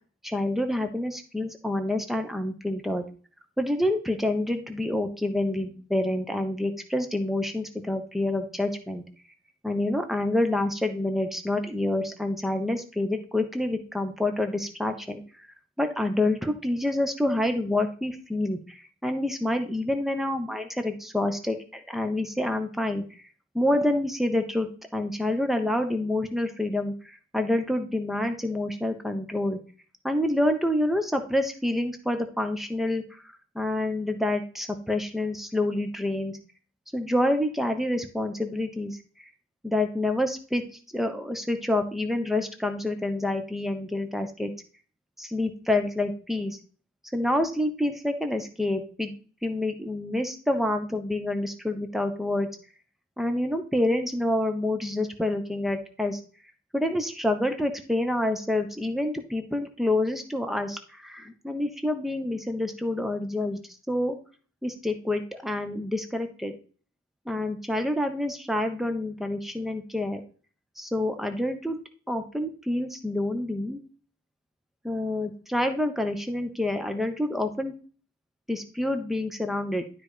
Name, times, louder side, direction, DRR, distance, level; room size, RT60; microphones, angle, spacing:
voice 1, 0.2-3.1 3.6-9.0 9.6-15.5 15.8-23.2 23.5-29.6 30.0-33.2 33.5-36.4 36.9-39.0 39.6-40.6 40.9-44.5 45.2-46.6 47.1-49.2 49.4-52.5 53.2-56.2 56.7-63.6 63.9-64.2 64.6-66.5 67.3-70.2 70.8-71.8 72.1-73.8 74.8-77.7 78.5-79.8, left 1 dB, ahead, 6 dB, 1.0 m, -27 dB
12.0 x 4.1 x 5.0 m, 0.40 s
head